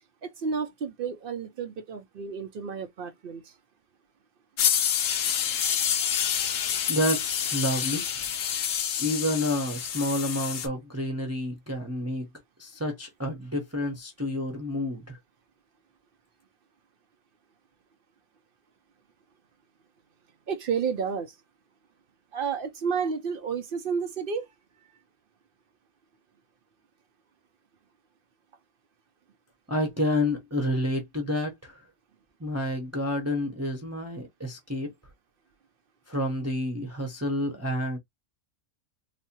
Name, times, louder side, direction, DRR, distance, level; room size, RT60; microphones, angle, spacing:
voice 1, 0.2-3.5 20.5-21.4 22.3-24.5, right 6 dB, 60° right, 0.6 m, -31 dB
sound 1, 4.6-10.7, left 8 dB, 80° left, 1.1 m, -28 dB
voice 2, 6.9-8.1 9.0-12.3 12.6-15.2 29.7-31.8 32.4-34.9 36.1-38.0, left 1 dB, 15° right, 0.7 m, -29 dB
4.0 x 2.1 x 2.7 m
omnidirectional pair, 1.3 m